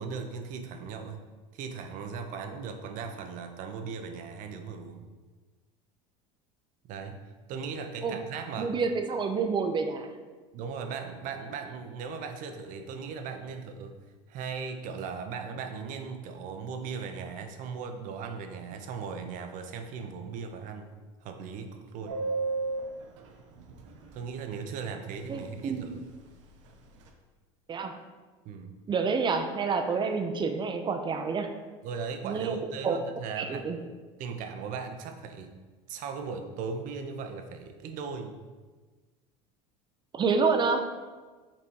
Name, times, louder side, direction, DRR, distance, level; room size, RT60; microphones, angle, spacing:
voice 1, 0.0-5.1 6.9-7.2 7.5-8.8 10.5-13.9 14.3-20.9 21.2-22.3 24.1-26.0 28.4-28.7 31.8-33.7 34.2-35.6 35.9-38.4, right 5 dB, 60° right, 6 dB, 0.9 m, -38 dB
voice 2, 8.6-10.1 25.3-26.0 27.7-27.9 28.9-31.5 32.2-32.6 32.8-33.0 33.4-33.8 40.1-40.9, right 5 dB, 30° right, 6 dB, 0.8 m, -28 dB
Subway metro underground, 22.1-24.2 24.5-24.6 24.9-25.1 25.4-25.8 26.1-27.1, right 3 dB, 85° right, 0.9 m, -34 dB
5.9 x 4.1 x 4.7 m, 1.4 s
supercardioid pair, 95°, 16 cm